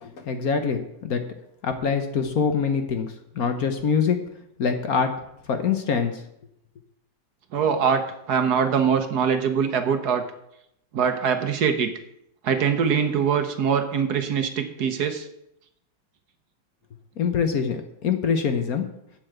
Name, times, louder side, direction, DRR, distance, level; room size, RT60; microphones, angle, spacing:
voice 1, 0.0-1.2 1.6-4.2 4.6-5.1 5.5-6.2 17.2-18.9, left 6 dB, 55° left, 7 dB, 1.3 m, -24 dB
voice 2, 7.5-8.0 8.3-10.2 10.9-11.9 12.4-15.3, right 7 dB, 60° right, 7 dB, 1.4 m, -23 dB
8.3 x 7.9 x 7.7 m, 0.78 s
omnidirectional pair, 2.1 m